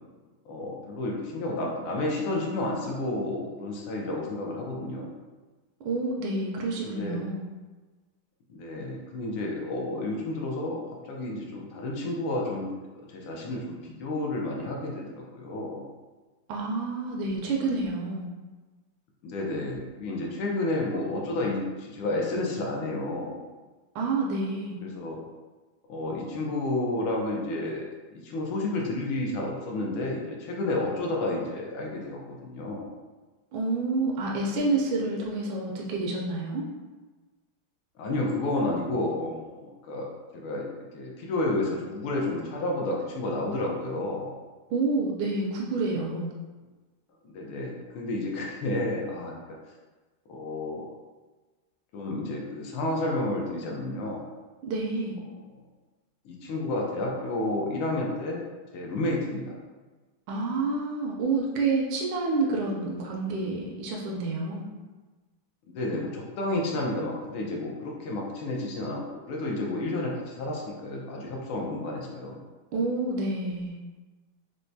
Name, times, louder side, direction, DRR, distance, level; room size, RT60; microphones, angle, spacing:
voice 1, 0.5-5.1 6.8-7.2 8.5-12.7 13.1-15.8 19.2-23.3 24.8-25.2 25.9-27.9 28.1-32.9 38.0-40.7 40.9-44.3 47.2-49.3 50.3-50.9 51.9-54.2 56.2-58.4 58.7-59.5 65.7-69.0 69.3-72.4, left 2 dB, 85° left, -1 dB, 1.5 m, -31 dB
voice 2, 5.8-7.4 16.5-18.3 23.9-24.8 33.5-36.6 44.7-46.3 54.7-55.2 60.3-64.7 72.7-73.8, right 3 dB, 80° right, -2 dB, 1.4 m, -28 dB
4.5 x 2.1 x 2.6 m, 1.3 s
omnidirectional pair, 2.3 m